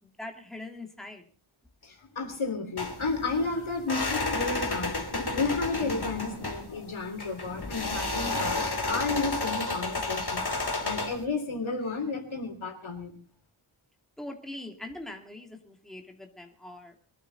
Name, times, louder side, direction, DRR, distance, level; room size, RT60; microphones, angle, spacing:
voice 1, 0.0-1.2 14.2-16.9, left 1 dB, ahead, 3 dB, 2.7 m, -42 dB
voice 2, 1.8-10.4 10.8-13.1, left 3 dB, 70° left, 5 dB, 3.4 m, -32 dB
sound 1, 2.8-11.2, left 2 dB, 50° left, 3.2 m, -31 dB
23.0 x 12.0 x 4.0 m, 0.39 s
wide cardioid pair, 75°, 49 cm